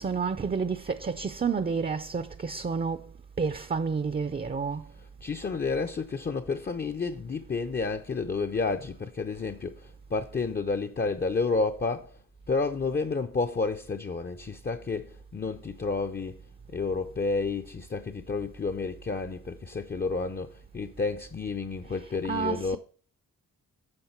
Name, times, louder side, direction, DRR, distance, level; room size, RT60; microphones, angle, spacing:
voice 1, 0.0-3.1 3.4-4.9 21.9-22.8, right 5 dB, 25° right, 0.5 m, -30 dB
voice 2, 5.0-12.2 12.5-16.4 16.7-22.8, left 4 dB, 30° left, 0.6 m, -30 dB
9.7 x 6.3 x 4.4 m
wide cardioid pair, 90°, 34 cm